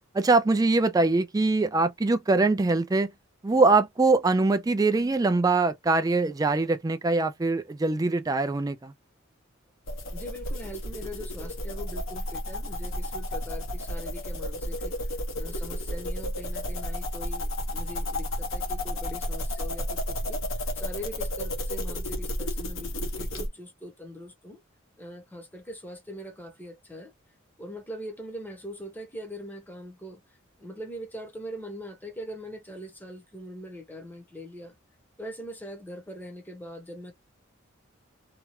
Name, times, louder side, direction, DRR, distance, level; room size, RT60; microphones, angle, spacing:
voice 1, 0.1-3.1 3.4-8.9, right 3 dB, 20° right, 0.3 m, -23 dB
sound 1, 9.9-23.5, left 1 dB, 90° left, 1.0 m, -32 dB
voice 2, 10.1-14.9 15.4-20.4 20.7-24.6 25.0-27.1 27.6-30.2 30.6-34.8 35.2-37.1, equal, 10° left, 0.9 m, -41 dB
2.9 x 2.3 x 3.0 m
head